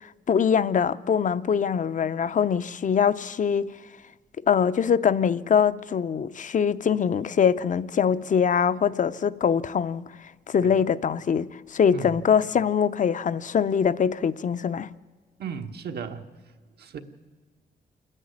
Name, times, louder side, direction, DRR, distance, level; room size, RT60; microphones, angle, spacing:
voice 1, 0.3-3.7 4.5-14.9, left 7 dB, 50° left, 0.6 m, -23 dB
voice 2, 11.9-12.2 15.4-16.3 16.8-17.0, right 6 dB, 80° right, 1.3 m, -35 dB
28.0 x 10.0 x 9.7 m
cardioid pair, 100°, 17 cm